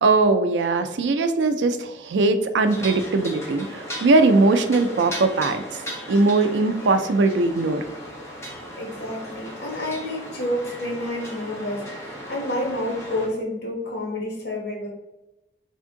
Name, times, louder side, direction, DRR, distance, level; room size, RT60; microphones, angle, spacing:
voice 1, 0.0-5.6 6.1-7.8, right 3 dB, 80° right, 9 dB, 0.4 m, -20 dB
sound 1, 2.6-13.3, equal, 15° left, 0.8 m, -37 dB
voice 2, 8.4-14.9, left 1 dB, 70° left, -2 dB, 1.3 m, -29 dB
3.5 x 2.6 x 3.7 m, 0.99 s
head